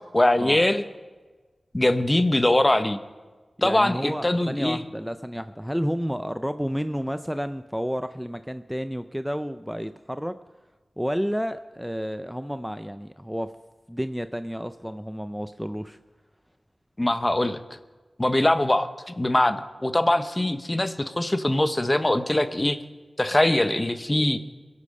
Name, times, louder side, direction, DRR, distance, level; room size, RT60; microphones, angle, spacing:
voice 1, 0.1-0.8 1.7-3.0 3.6-4.8 17.0-17.6 18.2-18.9 19.2-22.8 23.2-24.4, left 1 dB, 25° left, 10 dB, 0.9 m, -22 dB
voice 2, 3.6-10.4 11.0-13.5 13.9-16.0, equal, ahead, 10 dB, 0.5 m, -30 dB
22.0 x 8.4 x 5.4 m, 1.3 s
cardioid pair, 45°, 0 cm